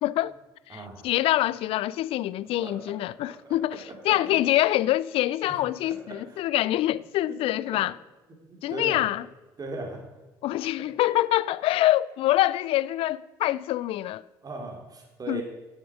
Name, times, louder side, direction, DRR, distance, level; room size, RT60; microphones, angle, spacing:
voice 1, 0.0-0.3 0.7-7.9 8.6-9.2 10.4-14.2 15.3-15.4, left 15 dB, 60° left, 0.4 m, -25 dB
voice 2, 0.7-1.1 2.6-2.9 3.2-3.5 4.0-4.4 5.5-6.4 7.3-7.4 7.7-7.8 8.5-9.0 9.6-10.0 10.8-10.9 14.4-15.4, right 2 dB, 35° right, 3.1 m, -38 dB
10.0 x 8.0 x 4.9 m
hypercardioid pair, 60°, 11 cm